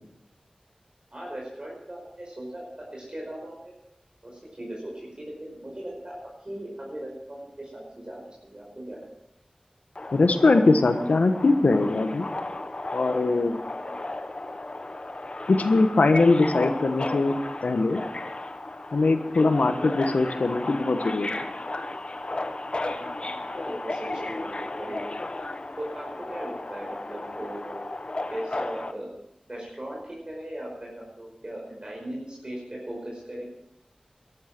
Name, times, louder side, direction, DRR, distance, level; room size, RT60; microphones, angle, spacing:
voice 1, 1.1-3.7 4.2-9.0 13.8-14.0 22.9-25.1 25.8-27.8 28.3-29.1 29.5-33.4, right 1 dB, 40° right, -3 dB, 5.3 m, -38 dB
Subway metro underground, 10.0-28.9, left 2 dB, 45° left, 1.1 m, -34 dB
voice 2, 10.1-12.3 12.9-13.6 15.5-17.4 17.6-18.0 18.9-21.5, left 3 dB, 85° left, 8 dB, 1.3 m, -21 dB
13.5 x 12.0 x 6.0 m, 0.82 s
wide cardioid pair, 45°, 2 cm